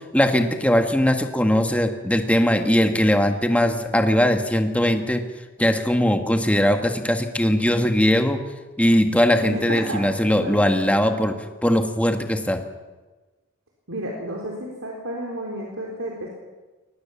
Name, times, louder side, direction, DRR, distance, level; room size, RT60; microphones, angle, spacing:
voice 1, 0.1-5.2 5.6-8.4 8.8-11.4 11.6-12.6, equal, 5° left, 5 dB, 1.7 m, -20 dB
voice 2, 9.4-10.0 10.4-10.6 13.9-16.3, right 1 dB, 75° right, -1 dB, 3.9 m, -31 dB
23.0 x 19.5 x 7.1 m, 1.3 s
head